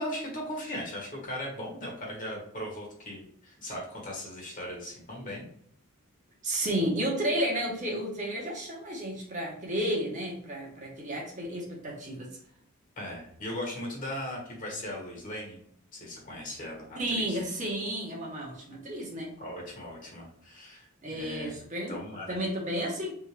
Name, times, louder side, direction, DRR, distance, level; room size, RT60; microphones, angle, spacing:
voice 1, 0.0-5.5 13.0-15.6 15.9-17.4 19.4-21.5 21.9-22.4, left 1 dB, 35° left, -2 dB, 1.5 m, -38 dB
voice 2, 6.4-12.3 17.0-19.3 21.0-22.0 22.3-23.1, right 1 dB, 35° right, -3 dB, 1.1 m, -32 dB
3.8 x 3.6 x 3.3 m, 0.66 s
head